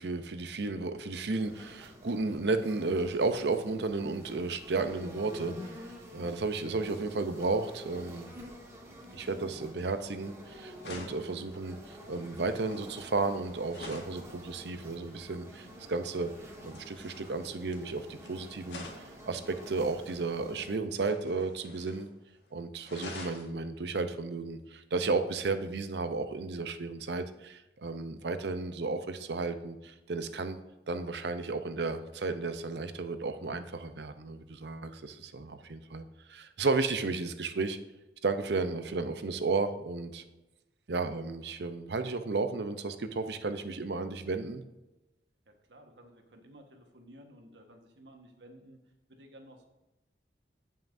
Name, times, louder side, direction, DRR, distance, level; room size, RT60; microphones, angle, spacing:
voice 1, 0.0-5.5 6.1-8.3 9.1-16.3 16.6-18.8 19.3-22.1 22.5-30.6 30.9-37.8 38.2-40.2 40.9-44.6, right 3 dB, 70° right, 9 dB, 0.7 m, -33 dB
sound 1, 1.4-20.8, equal, 15° right, 1.5 m, -49 dB
sound 2, 10.2-10.4 10.8-14.2 16.2-18.3 18.6-20.2 20.9-22.1 22.4-22.5 22.8-23.5 25.3-25.5, left 2 dB, 80° left, 1.7 m, -48 dB
voice 2, 45.5-49.7, right 1 dB, 85° right, 4 dB, 1.4 m, -55 dB
16.5 x 5.7 x 2.6 m, 1.0 s
head